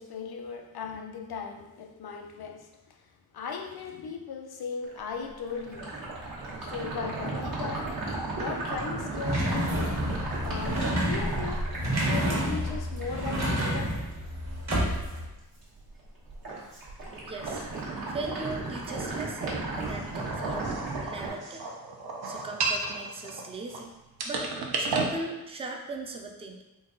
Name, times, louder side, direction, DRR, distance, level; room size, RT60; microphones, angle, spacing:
voice 1, 0.0-5.9 6.6-7.9 8.4-10.0 10.4-11.8 12.1-14.0, left 5 dB, 85° left, 4 dB, 0.5 m, -38 dB
sound 1, 4.8-15.2 15.5-16.0 16.3-21.3, right 2 dB, 65° right, 1.2 m, -35 dB
sound 2, 9.2-15.2, equal, 45° right, 1.1 m, -29 dB
voice 2, 17.3-17.7 18.1-20.7 21.0-21.7 22.3-23.9 24.2-24.5 24.8-26.6, right 3 dB, 15° right, 2 dB, 0.3 m, -38 dB
sound 3, 20.1-23.8 24.2-25.1, right 3 dB, 85° right, 0.6 m, -32 dB
4.0 x 2.2 x 3.7 m, 0.98 s
wide cardioid pair, 140°, 37 cm